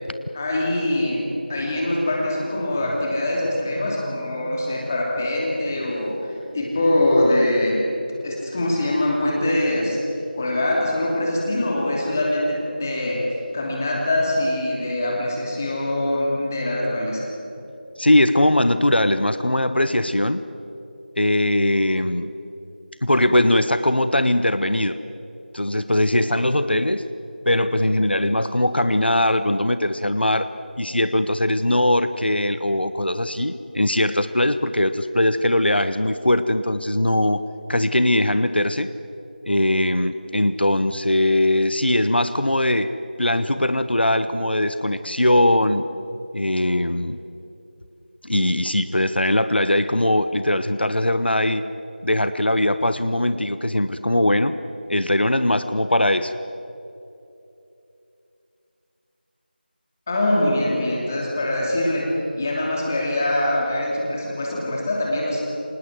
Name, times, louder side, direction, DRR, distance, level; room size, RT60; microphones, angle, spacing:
voice 1, 0.3-1.2 1.5-7.8 8.2-10.0 10.4-13.2 13.5-17.3 60.1-62.1 62.4-65.4, left 1 dB, 15° left, -2 dB, 2.8 m, -23 dB
voice 2, 18.0-20.4 21.2-22.3 23.0-25.0 25.5-27.1 27.4-30.5 30.8-37.4 37.7-38.9 39.4-42.9 43.2-45.9 46.3-47.2 48.2-51.6 52.0-54.5 54.9-56.3, left 1 dB, 80° left, 11 dB, 1.2 m, -20 dB
26.5 x 19.0 x 7.7 m, 2.8 s
figure-of-eight pair, 175°, 6 cm